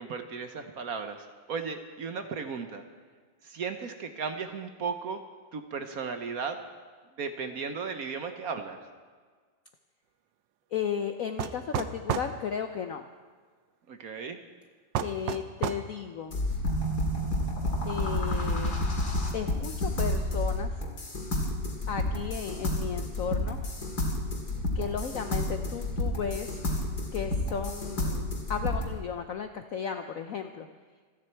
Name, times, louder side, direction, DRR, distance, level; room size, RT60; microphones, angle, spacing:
voice 1, 0.0-2.8 3.4-5.2 5.5-6.6 7.2-8.9 13.9-14.4, right 5 dB, 55° right, 7 dB, 1.2 m, -35 dB
voice 2, 10.7-13.0 15.0-16.4 17.8-18.7 19.3-20.8 21.9-23.6 24.7-26.6 27.1-30.7, left 7 dB, 70° left, 7 dB, 0.8 m, -34 dB
sound 1, 11.4-12.3 14.9-15.9, right 9 dB, 75° right, 1.3 m, -30 dB
sound 2, 16.3-28.9, left 1 dB, 55° left, 2.5 m, -30 dB
26.5 x 9.6 x 4.5 m, 1.5 s
omnidirectional pair, 2.1 m